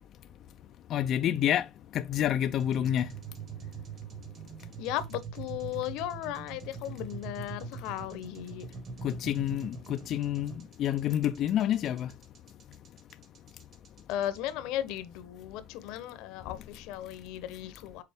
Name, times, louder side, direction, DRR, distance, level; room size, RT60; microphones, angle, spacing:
voice 1, 0.9-1.7 1.9-3.1 9.0-10.5 10.8-12.1, left 11 dB, 40° left, 0.3 m, -28 dB
sound 1, 2.6-14.5, right 5 dB, 35° right, 1.4 m, -43 dB
voice 2, 4.8-8.7 14.1-18.0, left 12 dB, 65° left, 0.9 m, -36 dB
6.6 x 4.3 x 3.5 m
cardioid pair, 150°, 0 cm